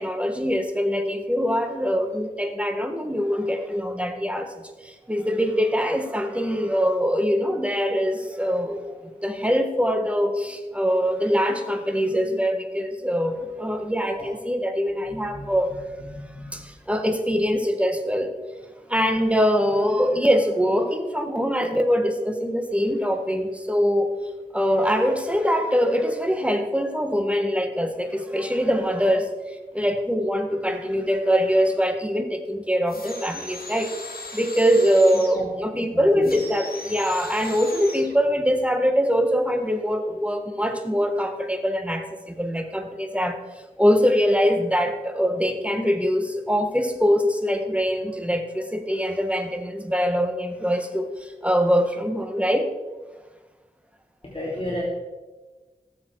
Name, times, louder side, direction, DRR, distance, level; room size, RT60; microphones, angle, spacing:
voice 1, 0.0-4.5 4.8-8.8 9.2-15.7 16.5-18.3 18.9-24.1 24.5-29.3 29.7-33.9 34.3-43.4 43.8-52.7, equal, 10° right, 5 dB, 1.7 m, -23 dB
voice 2, 16.1-16.5 29.1-29.2 35.4-35.5 35.9-36.3 54.2-54.8, left 1 dB, 35° left, -5 dB, 2.7 m, -33 dB
sound 1, 32.9-35.5 36.2-38.1, left 2 dB, 75° left, 2.3 m, -38 dB
18.0 x 7.4 x 4.8 m, 1.2 s
wide cardioid pair, 45°, 16 cm